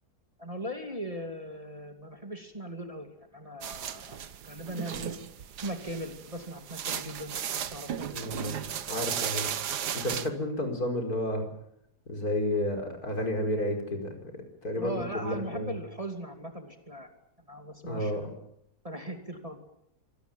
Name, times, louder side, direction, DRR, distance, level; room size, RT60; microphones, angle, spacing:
voice 1, 0.4-5.1 5.6-8.1 14.8-17.1 17.5-18.3 18.8-19.6, right 1 dB, 20° right, 5 dB, 2.7 m, -39 dB
sound 1, 3.6-10.3, right 9 dB, 80° right, 1.7 m, -35 dB
voice 2, 8.1-8.5 8.9-9.5 9.9-11.5 12.1-15.8 17.8-18.3, left 1 dB, 65° left, 4 dB, 5.4 m, -31 dB
25.5 x 19.0 x 9.1 m, 0.74 s
omnidirectional pair, 1.7 m